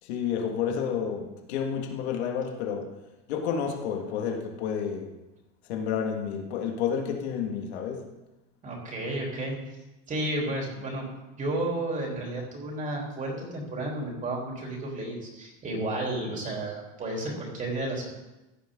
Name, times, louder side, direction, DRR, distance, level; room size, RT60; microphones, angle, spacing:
voice 1, 0.0-2.9 3.3-5.1 5.6-8.1, left 7 dB, 80° left, 2 dB, 2.2 m, -30 dB
voice 2, 8.6-9.6 10.1-11.1 11.4-18.1, right 1 dB, 25° right, -1 dB, 3.6 m, -32 dB
16.0 x 10.0 x 3.9 m, 1.0 s
supercardioid pair, 145°, 32 cm